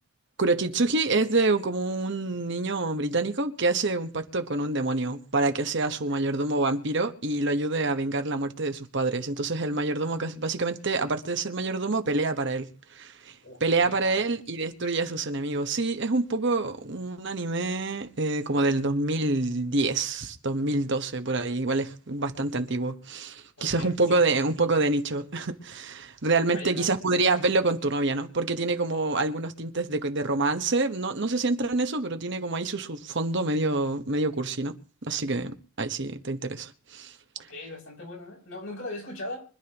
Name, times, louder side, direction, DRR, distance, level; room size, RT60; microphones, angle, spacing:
voice 1, 0.4-13.3 13.6-34.7 35.0-37.1, right 3 dB, 55° right, 1.2 m, -27 dB
voice 2, 5.9-6.3 13.4-14.2 23.6-24.2 26.5-26.9 37.5-39.4, left 2 dB, 75° left, 6.9 m, -40 dB
25.0 x 11.5 x 3.0 m
head